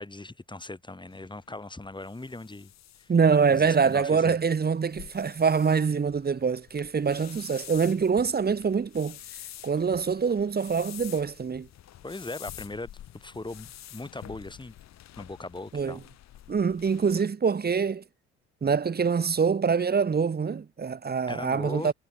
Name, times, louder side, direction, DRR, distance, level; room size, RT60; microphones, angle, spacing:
voice 1, 0.0-2.7 3.0-3.1 3.5-4.4 12.0-14.7 15.2-16.0 21.3-21.9, left 2 dB, 15° left, 3.9 m, -39 dB
sound 1, 1.1-17.2, left 12 dB, 60° left, 2.2 m, -48 dB
voice 2, 3.1-9.2 9.6-11.7 15.7-16.0 16.5-18.0 18.6-21.9, right 5 dB, 30° right, 1.7 m, -25 dB
hypercardioid pair, 55°, 31 cm